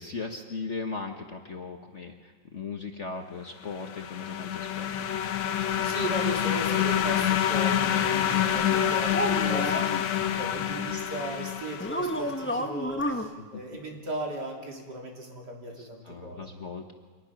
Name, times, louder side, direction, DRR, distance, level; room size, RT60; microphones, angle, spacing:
voice 1, 0.0-4.9 10.2-10.7 13.5-13.6 15.7-16.9, left 4 dB, 45° left, 3 dB, 1.3 m, -38 dB
sound 1, 3.7-12.3, left 10 dB, 80° left, 1.7 m, -27 dB
voice 2, 5.8-16.4, right 1 dB, 55° right, 0 dB, 3.5 m, -37 dB
sound 2, 8.7-10.0 11.8-13.3, equal, 15° left, 0.4 m, -30 dB
26.0 x 19.5 x 5.9 m, 1.5 s
omnidirectional pair, 2.1 m